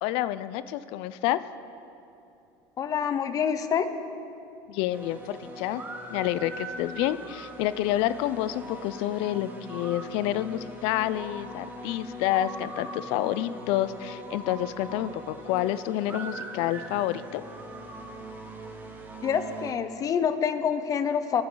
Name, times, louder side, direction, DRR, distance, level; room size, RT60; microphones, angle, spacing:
voice 1, 0.0-1.4 4.7-5.8 6.1-17.4, left 13 dB, 65° left, 15 dB, 0.5 m, -28 dB
voice 2, 2.8-3.9 19.2-21.4, left 7 dB, 35° left, 11 dB, 0.7 m, -26 dB
sound 1, 4.9-19.7, right 1 dB, 20° right, 1.6 m, -41 dB
22.5 x 9.7 x 3.9 m, 2.8 s
supercardioid pair, 125°, 10 cm